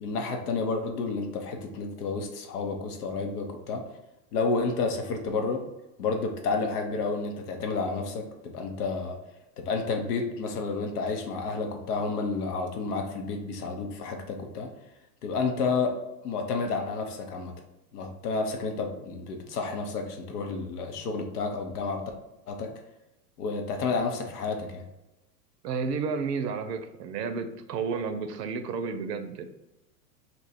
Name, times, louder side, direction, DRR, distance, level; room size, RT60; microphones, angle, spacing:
voice 1, 0.0-3.8 4.3-5.6 6.0-9.2 9.6-14.7 15.2-15.9 16.2-17.5 17.9-22.0 22.5-22.7 23.4-24.8, left 4 dB, 75° left, 4 dB, 0.8 m, -30 dB
voice 2, 25.6-29.5, right 5 dB, 90° right, 8 dB, 0.6 m, -31 dB
2.8 x 2.2 x 4.1 m, 0.96 s
hypercardioid pair, 115°, 47 cm